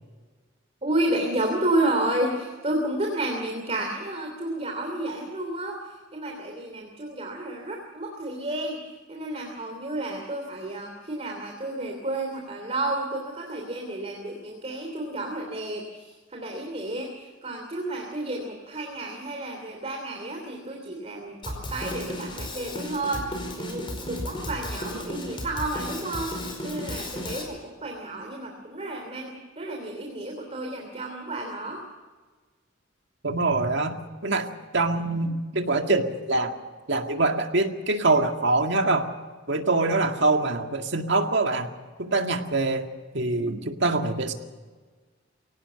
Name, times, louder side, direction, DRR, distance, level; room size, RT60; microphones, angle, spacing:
voice 1, 0.8-5.8 6.1-8.8 9.1-15.8 16.3-17.1 17.4-26.3 26.6-31.8, right 1 dB, 30° right, 2 dB, 3.0 m, -31 dB
Drum kit, 21.4-27.4, left 1 dB, 25° left, 4.9 m, -34 dB
voice 2, 33.2-34.0 34.2-34.5 34.7-36.5 36.9-39.1 39.5-41.7 42.0-42.9 43.1-44.3, right 2 dB, 60° right, 5 dB, 2.0 m, -24 dB
23.5 x 18.0 x 7.0 m, 1.4 s
head